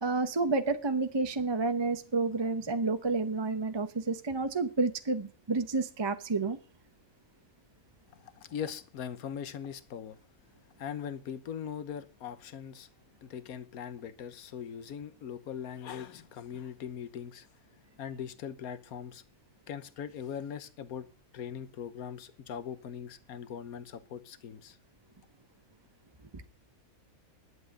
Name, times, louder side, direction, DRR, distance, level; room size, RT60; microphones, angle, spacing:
voice 1, 0.0-6.6, right 3 dB, 25° right, 0.6 m, -30 dB
voice 2, 8.1-10.2 10.8-12.9 13.2-17.5 18.0-19.2 19.7-21.1 21.3-24.8, left 8 dB, 75° left, 1.4 m, -40 dB
11.5 x 8.3 x 6.3 m
omnidirectional pair, 1.6 m